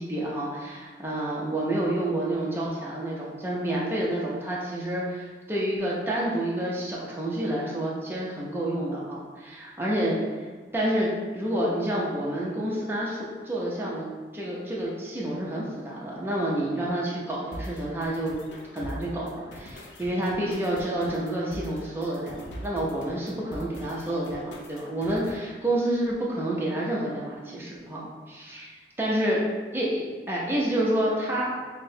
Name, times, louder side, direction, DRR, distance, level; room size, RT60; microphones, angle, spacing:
voice 1, 0.0-10.2 10.7-14.1 14.3-18.3 18.7-29.4 29.7-31.5, right 1 dB, 15° right, -5 dB, 0.6 m, -29 dB
sound 1, 17.5-25.5, equal, 85° left, 0.6 m, -42 dB
5.9 x 2.1 x 2.7 m, 1.4 s
head